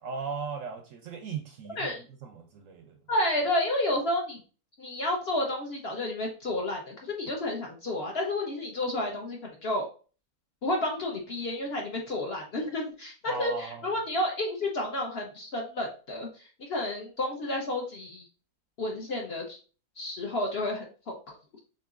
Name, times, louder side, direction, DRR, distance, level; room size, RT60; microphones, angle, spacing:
voice 1, 0.0-3.0 13.3-13.9, right 5 dB, 70° right, 0.8 m, -38 dB
voice 2, 3.1-4.4 4.8-9.9 10.6-18.2 18.8-19.6 20.0-21.3, left 1 dB, 50° left, 0.8 m, -31 dB
6.7 x 2.6 x 2.4 m
omnidirectional pair, 1.7 m